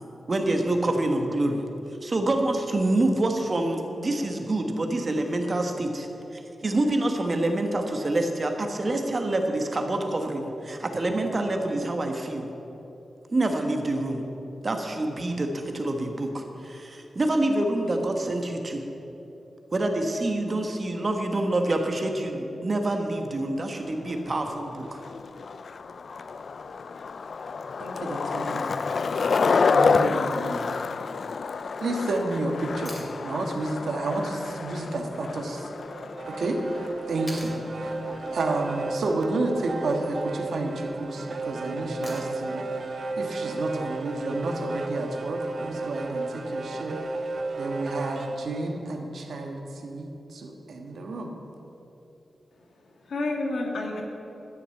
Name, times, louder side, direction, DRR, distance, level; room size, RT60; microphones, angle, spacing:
voice 1, 0.3-1.6 2.0-12.5 13.3-14.3 14.6-18.8 19.7-25.0, right 1 dB, 40° right, 4 dB, 1.4 m, -26 dB
Skateboard, 23.8-39.0, left 5 dB, 60° left, 0.3 m, -29 dB
voice 2, 27.8-28.7 29.7-30.7 31.8-32.9 33.2-35.7 36.2-36.6 37.1-37.5 37.8-38.0 38.3-47.0 47.6-51.3, right 2 dB, 75° right, 3 dB, 1.4 m, -31 dB
sound 1, 32.8-33.1 35.4-35.5 37.3-37.6 39.6-40.0 42.0-42.5 44.6-44.7, left 1 dB, 25° left, 2.6 m, -42 dB
sound 2, 35.8-48.4, right 3 dB, 60° right, 0.8 m, -33 dB
voice 3, 52.5-54.0, left 2 dB, 75° left, 1 dB, 1.9 m, -31 dB
12.0 x 6.8 x 7.8 m, 3.0 s
wide cardioid pair, 100°, 0 cm